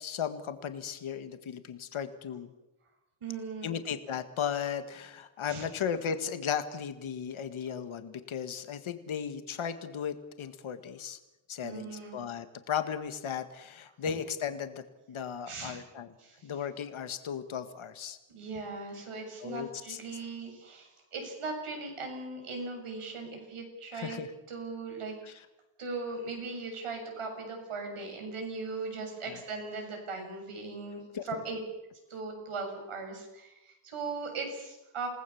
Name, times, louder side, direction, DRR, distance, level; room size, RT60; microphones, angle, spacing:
voice 1, 0.0-2.5 3.6-11.2 11.5-16.1 16.4-18.2 19.4-20.0 23.9-24.3 25.3-25.4 29.3-29.4 31.1-31.2, left 7 dB, 70° left, 9 dB, 1.9 m, -36 dB
voice 2, 3.2-3.7 5.5-5.6 11.6-12.2 15.5-15.8 16.2-16.5 18.3-24.2 24.5-25.4 25.8-31.6 32.1-35.1, right 3 dB, 85° right, 2 dB, 7.4 m, -39 dB
28.5 x 19.0 x 7.1 m, 0.94 s
wide cardioid pair, 165°, 49 cm